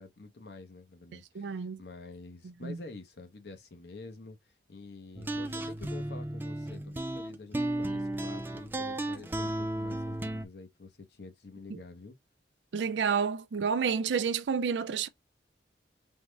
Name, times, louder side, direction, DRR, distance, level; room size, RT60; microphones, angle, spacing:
voice 1, 0.0-4.4 4.7-12.2, left 3 dB, 65° left, 0.8 m, -48 dB
voice 2, 1.4-1.8 2.4-2.8 11.7-11.8 12.7-15.1, right 6 dB, 90° right, 0.4 m, -30 dB
sound 1, 5.1-10.4, right 1 dB, 10° right, 0.3 m, -34 dB
3.5 x 2.1 x 3.1 m
head